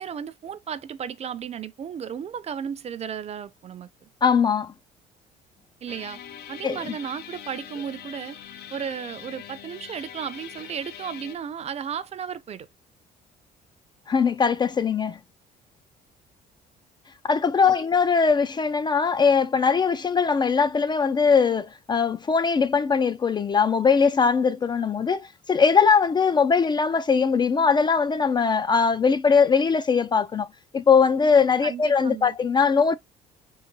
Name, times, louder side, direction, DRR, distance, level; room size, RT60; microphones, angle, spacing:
voice 1, 0.0-4.1 5.8-6.2 6.5-8.4 8.7-12.7 17.6-17.7 31.6-32.3, right 8 dB, 40° right, 0.5 m, -34 dB
voice 2, 4.2-4.7 6.6-6.9 14.1-15.2 17.2-30.5 30.7-33.0, left 5 dB, 25° left, 0.4 m, -21 dB
sound 1, 5.9-11.4, left 9 dB, 70° left, 0.7 m, -42 dB
3.9 x 2.5 x 3.9 m
cardioid pair, 110°, 17 cm